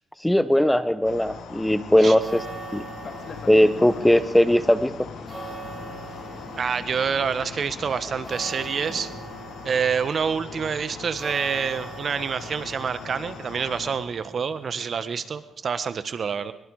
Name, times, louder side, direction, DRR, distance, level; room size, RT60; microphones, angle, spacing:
voice 1, 0.2-2.4 2.7-2.8 3.5-5.1, equal, 5° left, 13 dB, 1.1 m, -19 dB
sound 1, 1.0-14.0, left 5 dB, 75° left, 4.0 m, -41 dB
sound 2, 2.0-15.5, right 3 dB, 30° right, 7.6 m, -42 dB
Boat Water vehicle, 3.0-8.7, left 5 dB, 50° left, 2.2 m, -43 dB
voice 2, 6.6-9.1 9.6-16.5, right 6 dB, 50° right, 13 dB, 1.3 m, -27 dB
23.5 x 22.5 x 4.9 m, 0.74 s
cardioid pair, 90°, 0 cm